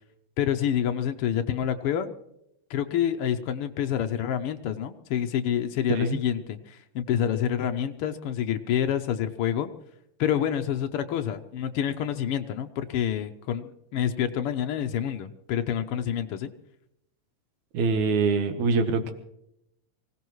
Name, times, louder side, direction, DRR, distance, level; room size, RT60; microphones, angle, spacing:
voice 1, 0.4-2.1 2.7-9.7 10.2-16.5, left 9 dB, 75° left, 7 dB, 1.3 m, -27 dB
voice 2, 17.7-19.1, right 4 dB, 85° right, 7 dB, 2.5 m, -24 dB
24.5 x 17.0 x 3.1 m, 0.80 s
omnidirectional pair, 3.4 m